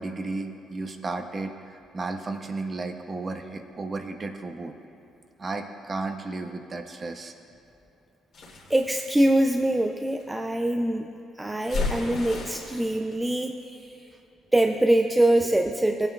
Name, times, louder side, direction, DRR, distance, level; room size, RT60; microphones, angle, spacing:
voice 1, 0.0-4.8 5.4-7.3 13.7-13.8, right 3 dB, 30° right, 6 dB, 0.7 m, -34 dB
sound 1, 8.3-10.2 11.7-13.0, left 4 dB, 60° left, 2.4 m, -33 dB
voice 2, 8.7-11.1 11.4-13.9 14.5-16.1, right 1 dB, 10° right, 4 dB, 0.4 m, -23 dB
18.5 x 8.9 x 2.3 m, 2.9 s
cardioid pair, 105°, 0 cm